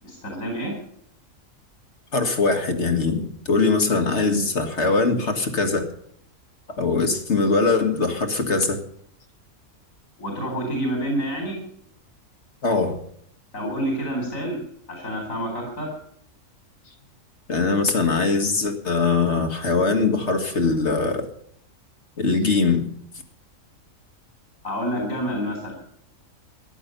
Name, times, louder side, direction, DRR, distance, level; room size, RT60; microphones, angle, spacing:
voice 1, 0.0-0.7 10.2-11.6 13.5-14.6 14.9-15.9 24.6-25.7, equal, 85° left, 1 dB, 4.4 m, -28 dB
voice 2, 2.1-5.9 6.7-8.8 12.6-13.0 17.5-21.3 22.2-22.9, left 4 dB, 55° left, 6 dB, 2.1 m, -22 dB
14.5 x 11.0 x 6.8 m, 0.67 s
omnidirectional pair, 1.4 m